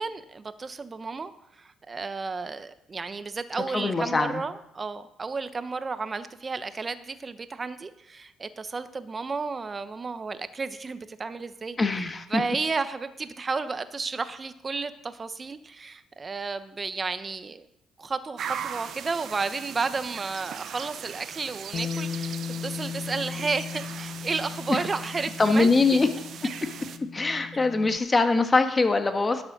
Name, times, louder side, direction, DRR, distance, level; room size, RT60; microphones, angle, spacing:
voice 1, 0.0-12.0 12.3-17.7 18.0-26.0, right 4 dB, 35° right, 12 dB, 1.0 m, -32 dB
voice 2, 3.7-4.4 11.8-12.4 24.7-24.8 25.4-26.1 27.1-29.4, left 3 dB, 30° left, 7 dB, 1.5 m, -23 dB
sound 1, 18.4-27.0, right 8 dB, 65° right, 0.8 m, -39 dB
Bass guitar, 21.7-28.0, left 6 dB, 60° left, 0.4 m, -37 dB
12.0 x 7.6 x 6.1 m, 0.80 s
supercardioid pair, 65°, 0 cm